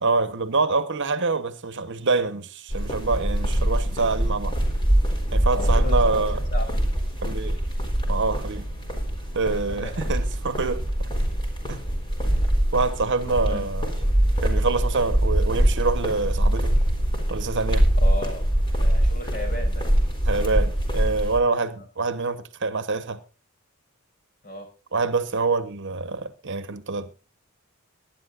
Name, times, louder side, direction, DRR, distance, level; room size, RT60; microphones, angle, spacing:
voice 1, 0.0-4.6 5.3-6.4 7.2-7.6 8.1-8.7 9.3-10.9 11.7-11.8 12.7-13.9 14.4-16.8 17.3-17.9 20.3-23.2 24.9-27.1, right 3 dB, 60° right, 1.1 m, -26 dB
sound 1, 2.7-21.4, equal, 20° left, 3.9 m, -23 dB
voice 2, 5.5-6.8 9.7-10.0 13.5-13.7 18.0-18.4 18.7-19.9 24.4-24.7, left 1 dB, 40° left, 5.6 m, -35 dB
23.5 x 11.0 x 2.5 m
head